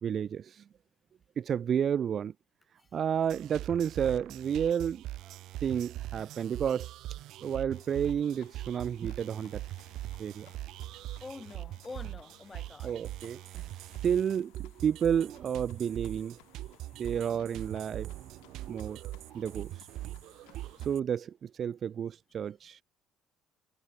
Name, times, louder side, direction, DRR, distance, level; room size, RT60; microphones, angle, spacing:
voice 1, 0.0-0.6 1.4-2.3 2.9-5.3 5.6-6.9 7.4-9.6 10.2-10.5 12.8-13.4 14.0-16.4 17.0-18.1 18.7-19.0 19.3-19.9 20.8-22.8, right 8 dB, 40° right, 0.9 m, -31 dB
sound 1, 3.2-21.0, right 15 dB, 70° right, 1.5 m, -42 dB
sound 2, 7.7-20.9, left 26 dB, 90° left, 7.7 m, -61 dB
voice 2, 11.2-13.0, left 3 dB, 20° left, 5.0 m, -46 dB
cardioid pair, 115°, 0 cm